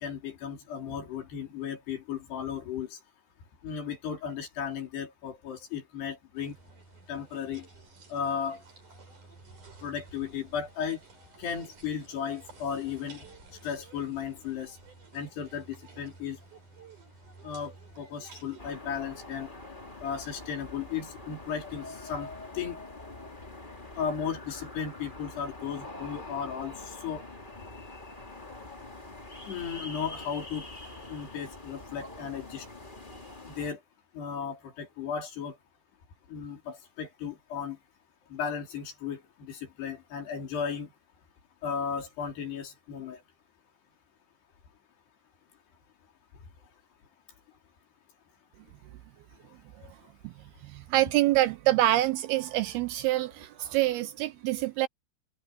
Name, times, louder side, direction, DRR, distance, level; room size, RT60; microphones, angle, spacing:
voice 1, 0.0-3.0 3.6-6.6 7.1-7.7 8.1-8.6 9.8-11.0 11.4-13.2 13.6-14.8 15.1-16.4 17.4-19.5 20.0-22.3 22.5-22.8 24.0-27.2 29.5-30.6 31.1-32.7 33.5-33.8 34.1-35.6 36.3-37.8 38.3-40.9 41.6-43.2, left 7 dB, 70° left, 6.0 m, -35 dB
sound 1, 6.4-18.6, right 3 dB, 45° right, 8.0 m, -53 dB
sound 2, 18.6-33.7, left 2 dB, 15° left, 2.2 m, -44 dB
voice 2, 50.6-54.9, right 15 dB, 80° right, 2.4 m, -26 dB
omnidirectional pair, 4.9 m